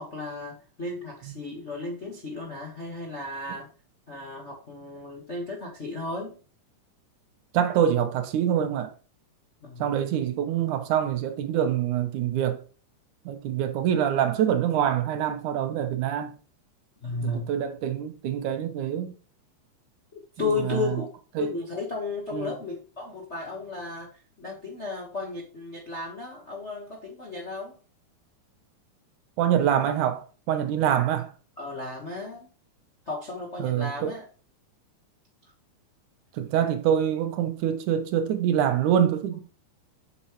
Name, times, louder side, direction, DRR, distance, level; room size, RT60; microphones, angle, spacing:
voice 1, 0.0-3.7 4.1-6.4 9.6-10.0 17.0-17.5 20.4-21.1 21.4-24.1 24.4-27.8 31.6-32.5 33.1-34.2, left 3 dB, 45° left, 0.9 m, -34 dB
voice 2, 7.5-8.9 9.8-12.6 13.3-16.3 17.2-19.1 20.4-21.0 21.4-21.5 22.3-22.5 29.4-31.3 33.6-34.1 36.4-39.4, right 9 dB, 75° right, 2.4 m, -25 dB
8.4 x 7.0 x 3.1 m
omnidirectional pair, 3.6 m